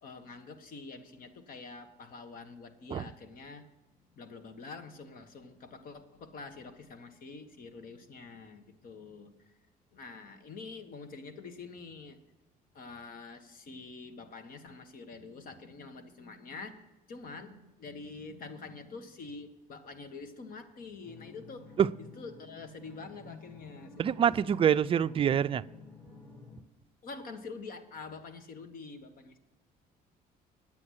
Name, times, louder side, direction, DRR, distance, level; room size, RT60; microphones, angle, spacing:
voice 1, 0.0-3.6 4.2-9.5 9.9-12.2 12.7-16.8 17.1-21.7 22.2-24.3 27.0-29.4, left 4 dB, 55° left, 9 dB, 1.3 m, -46 dB
sound 1, 21.0-26.6, left 3 dB, 10° left, 1.6 m, -52 dB
voice 2, 24.0-25.6, right 8 dB, 35° right, 14 dB, 0.4 m, -25 dB
9.7 x 8.9 x 6.4 m, 1.1 s
cardioid pair, 110°, 17 cm